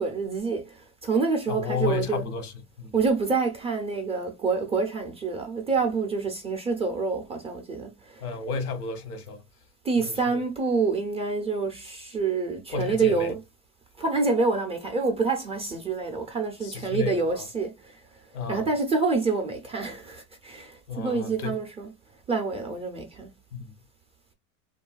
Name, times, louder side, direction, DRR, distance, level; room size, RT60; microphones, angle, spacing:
voice 1, 0.0-2.3 2.9-8.3 9.8-13.4 14.0-18.0 18.5-21.9 22.3-23.3, right 4 dB, 15° right, 0.4 m, -27 dB
voice 2, 1.5-2.5 2.8-3.0 8.2-9.4 10.0-10.4 12.7-13.3 16.6-17.5 18.3-18.7 20.9-21.6 23.5-23.7, left 5 dB, 90° left, 0.9 m, -32 dB
2.6 x 2.3 x 2.3 m
supercardioid pair, 110°, 43 cm